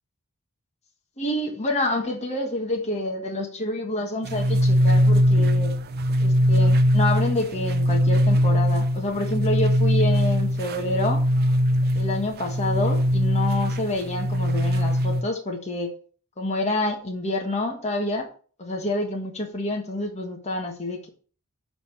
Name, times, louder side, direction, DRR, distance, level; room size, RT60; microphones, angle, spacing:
voice 1, 1.2-5.7 6.2-11.2 11.9-15.9 16.4-18.3 18.6-21.1, left 1 dB, 30° left, 1 dB, 1.4 m, -28 dB
sound 1, 4.2-15.2, equal, 45° right, 0.5 m, -21 dB
7.0 x 5.0 x 7.1 m, 0.41 s
head